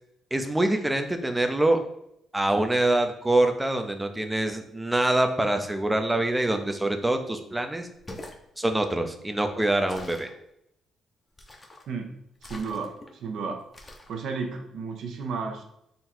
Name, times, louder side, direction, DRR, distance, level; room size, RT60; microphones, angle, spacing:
voice 1, 0.3-1.8 2.3-7.9 8.6-10.3, right 1 dB, 10° right, 6 dB, 0.5 m, -25 dB
sound 1, 8.0-8.4 9.9-10.4 11.4-11.9 12.4-13.1 13.7-14.1, left 1 dB, 25° left, 0.7 m, -44 dB
voice 2, 12.4-13.6 14.1-15.6, right 4 dB, 70° right, 4 dB, 0.7 m, -33 dB
3.9 x 2.3 x 4.3 m, 0.77 s
cardioid pair, 90°, 0 cm